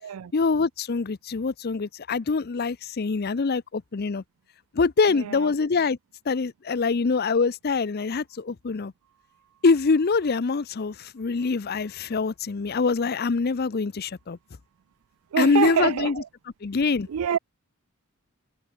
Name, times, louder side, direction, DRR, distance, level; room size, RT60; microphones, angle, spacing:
voice 1, 0.3-4.2 4.7-6.0 6.3-8.9 9.6-14.4 15.4-16.2 16.6-17.1, left 4 dB, 45° left, 0.5 m, -24 dB
voice 2, 5.1-5.5 15.3-16.3 17.1-17.4, right 8 dB, 80° right, 0.4 m, -26 dB
head